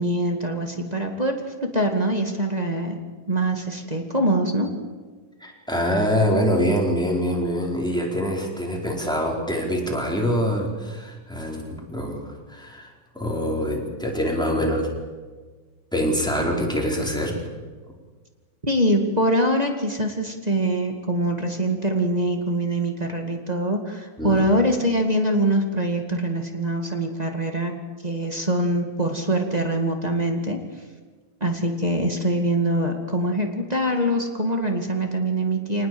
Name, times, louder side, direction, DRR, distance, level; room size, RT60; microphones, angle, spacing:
voice 1, 0.0-3.0 3.3-4.7 18.6-27.7 28.0-30.6 31.4-35.9, right 1 dB, 15° right, 3 dB, 1.6 m, -24 dB
voice 2, 5.4-12.9 13.1-14.9 15.9-17.4 24.2-24.4, equal, ahead, -1 dB, 4.3 m, -24 dB
26.0 x 19.5 x 7.9 m, 1.4 s
omnidirectional pair, 3.8 m